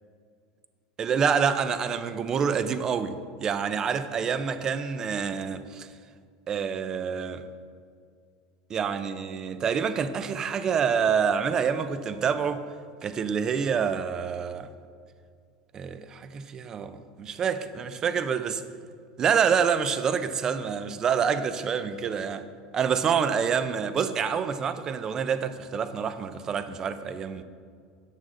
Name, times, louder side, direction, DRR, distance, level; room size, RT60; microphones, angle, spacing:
voice 1, 1.0-5.9 6.5-7.4 8.7-12.6 13.0-14.7 15.7-18.6 19.2-22.4 22.7-27.4, right 7 dB, 30° right, 0.7 m, -27 dB
14.0 x 9.1 x 3.9 m
supercardioid pair, 135°, 2 cm